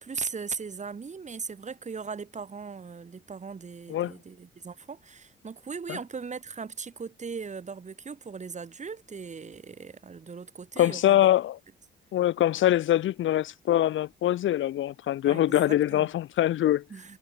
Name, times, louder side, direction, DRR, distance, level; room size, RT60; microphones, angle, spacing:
voice 1, 0.0-11.3 15.2-16.1 16.9-17.2, right 5 dB, 35° right, 5.0 m, -38 dB
voice 2, 10.8-11.6 12.1-16.8, left 12 dB, 75° left, 2.8 m, -24 dB
cardioid pair, 90°, 20 cm